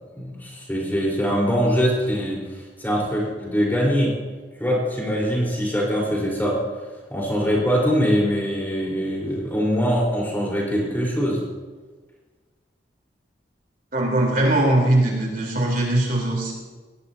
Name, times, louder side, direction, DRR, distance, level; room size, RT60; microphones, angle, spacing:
voice 1, 0.1-2.4 2.8-4.1 4.6-6.6 7.1-11.4, equal, 10° left, -3 dB, 4.4 m, -22 dB
voice 2, 13.9-16.5, right 1 dB, 45° right, -2 dB, 4.1 m, -20 dB
21.0 x 18.5 x 2.9 m, 1.3 s
head